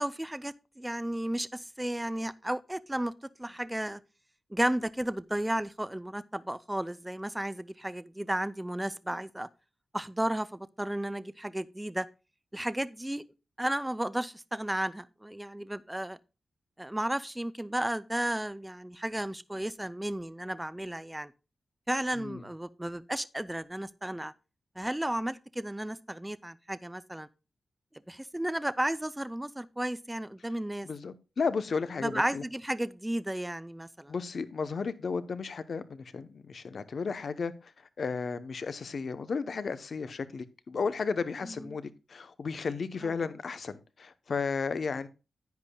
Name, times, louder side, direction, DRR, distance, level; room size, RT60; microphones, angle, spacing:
voice 1, 0.0-3.1 3.4-4.0 4.5-9.5 9.9-12.1 12.5-13.2 13.6-16.2 16.8-21.3 21.9-24.3 24.8-27.3 28.1-30.9 32.0-34.1 41.4-41.8 43.0-43.1, right 1 dB, 10° right, 0.4 m, -33 dB
voice 2, 30.8-32.4 34.1-37.5 38.0-45.1, left 5 dB, 55° left, 0.7 m, -34 dB
10.5 x 10.0 x 2.2 m
wide cardioid pair, 160°, 0 cm